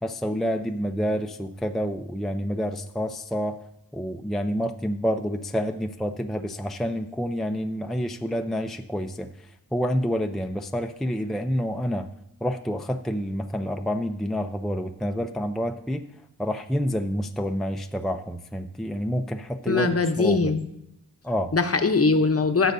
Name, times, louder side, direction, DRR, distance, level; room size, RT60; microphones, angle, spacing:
voice 1, 0.0-3.6 3.9-12.1 12.4-16.1 16.4-19.9 20.2-20.5 21.2-21.5, equal, ahead, 5 dB, 0.5 m, -28 dB
voice 2, 19.7-20.6 21.5-22.7, left 4 dB, 35° left, 7 dB, 0.9 m, -21 dB
15.0 x 6.5 x 2.7 m, 0.81 s
cardioid pair, 50°, 40 cm